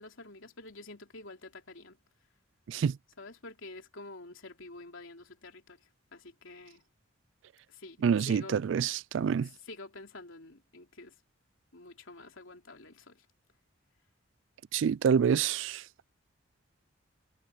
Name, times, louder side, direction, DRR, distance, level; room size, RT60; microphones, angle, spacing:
voice 1, 0.0-2.0 3.2-5.8 6.1-6.8 7.7-8.0 8.3-8.6 9.7-11.1 11.7-13.2, left 2 dB, 80° left, 3.2 m, -48 dB
voice 2, 8.0-9.5 14.7-15.8, right 7 dB, 70° right, 0.3 m, -27 dB
head